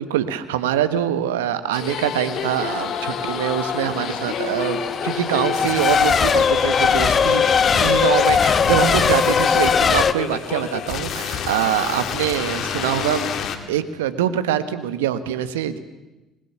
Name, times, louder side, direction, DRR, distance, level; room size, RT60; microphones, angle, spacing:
voice 1, 0.0-13.4 13.7-15.8, right 10 dB, 85° right, 12 dB, 1.3 m, -24 dB
sound 1, 1.7-13.6, left 7 dB, 60° left, 2.4 m, -29 dB
Race car auto racing / Accelerating revving vroom / Mechanisms, 2.3-10.1, left 6 dB, 40° left, 1.1 m, -20 dB
26.0 x 20.5 x 7.1 m, 1.0 s
hypercardioid pair, 55°, 0 cm